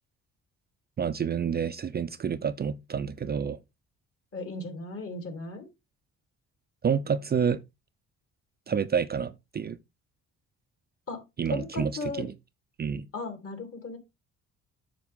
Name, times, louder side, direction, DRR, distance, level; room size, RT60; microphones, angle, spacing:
voice 1, 1.0-3.6 6.8-7.6 8.7-9.8 11.4-12.3 12.8-13.1, right 7 dB, 35° right, 0.5 m, -29 dB
voice 2, 4.3-5.7 11.1-11.2 11.5-12.3 13.1-14.0, left 3 dB, 45° left, 3.2 m, -36 dB
7.5 x 6.5 x 3.6 m
cardioid pair, 90°, 30 cm